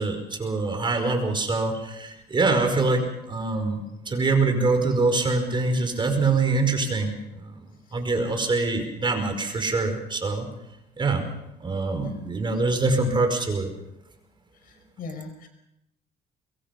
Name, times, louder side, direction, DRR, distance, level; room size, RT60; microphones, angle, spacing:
voice 1, 0.0-7.6 7.9-10.5 11.0-11.2 11.6-13.7, right 3 dB, 30° right, 5 dB, 5.2 m, -24 dB
voice 2, 15.0-15.5, left 4 dB, 60° left, 5 dB, 5.5 m, -38 dB
24.0 x 23.0 x 5.4 m, 0.88 s
cardioid pair, 110°, 17 cm